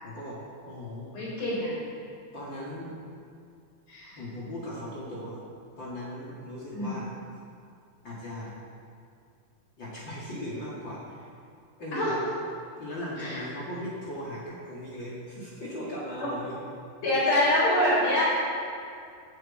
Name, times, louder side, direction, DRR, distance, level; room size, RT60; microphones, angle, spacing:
voice 1, 0.0-1.2 2.3-3.0 4.2-5.4 5.8-7.1 8.0-8.6 9.8-11.3 11.8-12.1 12.8-16.6, left 1 dB, 40° left, -6 dB, 2.6 m, -38 dB
voice 2, 1.1-1.7 3.9-4.2 6.7-6.9 11.9-12.2 13.2-13.4 16.2-16.3 17.0-18.2, left 1 dB, 80° left, -7 dB, 5.8 m, -25 dB
11.5 x 8.3 x 9.0 m, 2.4 s
omnidirectional pair, 3.6 m